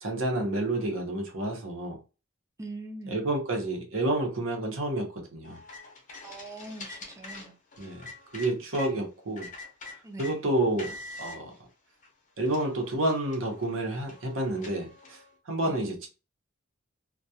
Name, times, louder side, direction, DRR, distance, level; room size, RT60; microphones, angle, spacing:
voice 1, 0.0-2.0 3.1-5.6 7.8-8.0 8.3-9.5 10.2-10.9 11.2-11.5 12.4-15.2 15.5-16.1, right 1 dB, 70° right, 0.8 m, -29 dB
voice 2, 2.6-3.2 6.2-7.5 10.0-10.4 15.6-15.8, right 2 dB, 15° right, 0.5 m, -42 dB
sound 1, 5.5-8.9 9.4-10.3 10.8-11.4 12.0-12.1 12.5-15.3, left 2 dB, 40° left, 0.6 m, -45 dB
2.3 x 2.2 x 2.7 m
head